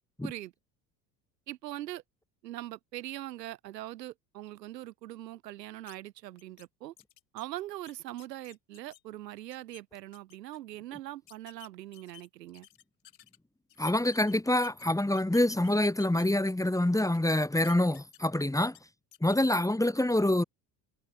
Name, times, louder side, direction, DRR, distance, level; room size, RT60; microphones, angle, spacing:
voice 1, 1.5-2.0 2.4-6.9 7.3-12.7, right 15 dB, 75° right, 5.0 m, -42 dB
sound 1, 5.9-6.0 6.4-6.7 7.0-9.0 9.4-9.8 10.1-10.6 11.3-13.4 13.7-14.8 15.1-16.6 17.0-18.4 18.7-18.8 19.1-19.4, left 12 dB, 80° left, 7.7 m, -55 dB
voice 2, 13.8-18.8 19.2-20.4, left 1 dB, 5° left, 4.0 m, -26 dB
hypercardioid pair, 65°, 49 cm